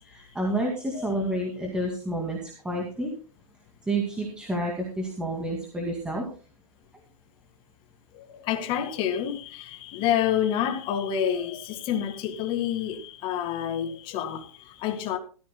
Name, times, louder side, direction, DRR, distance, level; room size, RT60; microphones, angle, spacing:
voice 1, 0.1-3.1 3.9-6.2, right 1 dB, 5° right, 2.3 m, -29 dB
voice 2, 8.1-15.2, left 9 dB, 25° left, 2.0 m, -28 dB
17.5 x 14.0 x 2.2 m
hypercardioid pair, 145°, 19 cm